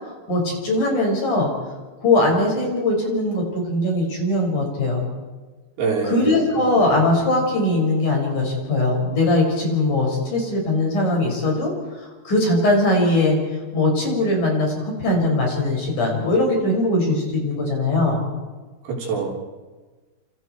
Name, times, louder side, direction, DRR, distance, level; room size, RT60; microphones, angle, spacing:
voice 1, 0.3-1.5 2.0-5.0 6.0-13.4 13.7-18.2, left 2 dB, 45° left, 0 dB, 7.4 m, -20 dB
voice 2, 5.8-6.3 18.9-19.3, right 5 dB, 65° right, -1 dB, 5.6 m, -24 dB
29.0 x 28.0 x 4.6 m, 1.3 s
omnidirectional pair, 5.0 m